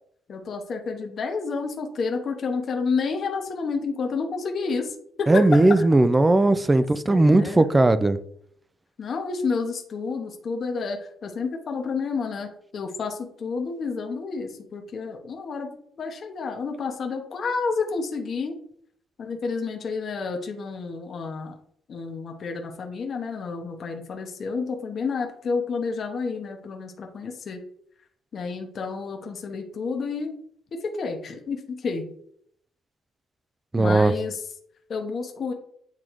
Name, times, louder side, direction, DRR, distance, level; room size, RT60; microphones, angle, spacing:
voice 1, 0.3-4.9 5.2-5.9 6.7-7.7 9.0-15.7 16.0-18.5 19.2-21.5 21.9-27.6 28.3-30.3 30.7-32.0 33.8-34.4 34.9-35.5, left 4 dB, 40° left, 3 dB, 0.8 m, -30 dB
voice 2, 5.3-8.2 33.7-34.1, right 2 dB, 10° right, 13 dB, 0.3 m, -18 dB
8.2 x 3.7 x 3.1 m, 0.68 s
cardioid pair, 150°, 0 cm